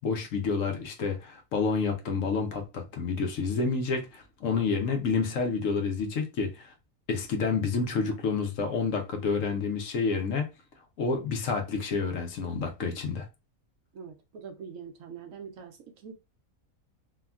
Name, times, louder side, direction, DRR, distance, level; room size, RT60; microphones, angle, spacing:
voice 1, 0.0-6.7 7.1-10.5 11.0-13.3, left 4 dB, 70° left, 1.0 m, -29 dB
voice 2, 13.9-16.1, right 6 dB, 70° right, 1.0 m, -44 dB
3.5 x 2.2 x 2.3 m
omnidirectional pair, 1.5 m